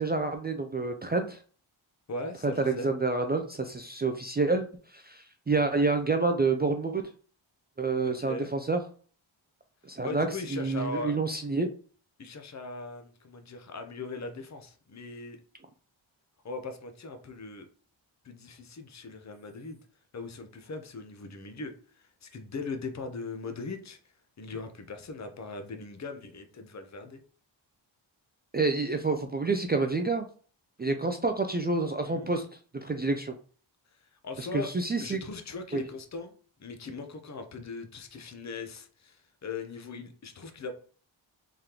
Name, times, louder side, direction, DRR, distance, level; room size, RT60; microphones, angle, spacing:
voice 1, 0.0-1.4 2.4-4.7 4.9-7.0 7.8-8.8 9.9-11.7 28.5-30.3 30.8-32.5 32.7-33.3 34.4-35.2 35.7-35.8, right 3 dB, 20° right, 5 dB, 0.3 m, -28 dB
voice 2, 2.1-2.9 8.0-8.5 10.0-11.2 12.2-15.4 16.4-17.7 18.2-19.8 20.1-24.0 24.4-27.2 32.0-32.3 34.1-34.7 35.0-36.3 36.6-40.7, left 3 dB, 35° left, 6 dB, 0.7 m, -39 dB
3.7 x 3.3 x 2.9 m, 0.42 s
cardioid pair, 60°, 48 cm